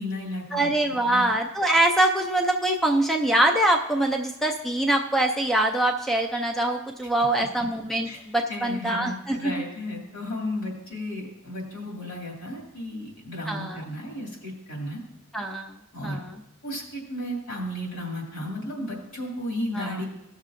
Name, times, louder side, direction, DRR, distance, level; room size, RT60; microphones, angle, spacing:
voice 1, 0.0-0.7 1.1-1.3 8.0-8.2 8.5-15.0 15.9-16.2 16.6-20.0, left 1 dB, 65° left, -3 dB, 2.7 m, -34 dB
voice 2, 0.5-9.5 13.5-13.8 15.3-15.7 16.0-16.3 19.7-19.9, right 1 dB, ahead, 3 dB, 0.4 m, -24 dB
17.0 x 6.5 x 2.5 m, 0.93 s
head